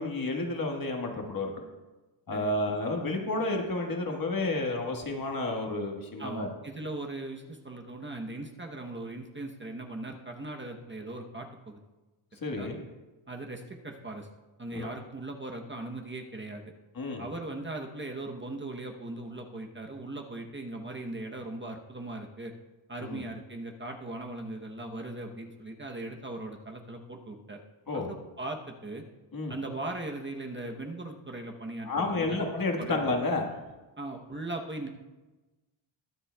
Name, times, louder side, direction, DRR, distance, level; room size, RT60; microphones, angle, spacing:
voice 1, 0.0-1.5 2.3-6.5 12.4-12.8 14.7-14.9 16.9-17.2 23.0-23.2 27.9-28.1 29.3-29.5 31.8-33.4, left 2 dB, 45° left, 2 dB, 1.5 m, -31 dB
voice 2, 6.2-11.8 12.5-12.7 13.3-14.3 14.6-16.6 17.2-22.5 22.9-27.6 27.9-29.0 29.5-32.4 32.8-33.0 34.0-34.9, right 2 dB, 25° right, 2 dB, 0.9 m, -39 dB
21.5 x 7.4 x 2.3 m, 1.1 s
wide cardioid pair, 105°, 49 cm